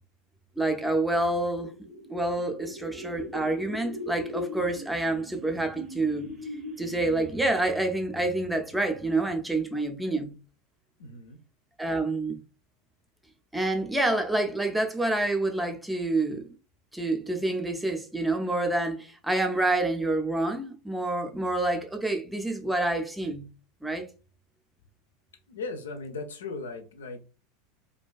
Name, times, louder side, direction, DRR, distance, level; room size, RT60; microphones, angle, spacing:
voice 1, 0.6-1.7 2.1-6.3 6.8-10.4 11.8-12.4 13.5-16.5 16.9-23.5 23.8-24.0, right 2 dB, 5° right, 0.5 m, -28 dB
sound 1, 1.2-7.7, left 2 dB, 45° right, 0.7 m, -40 dB
voice 2, 11.0-11.4 25.5-27.2, left 3 dB, 75° left, 0.5 m, -37 dB
2.4 x 2.2 x 2.3 m
figure-of-eight pair, 80°, 0 cm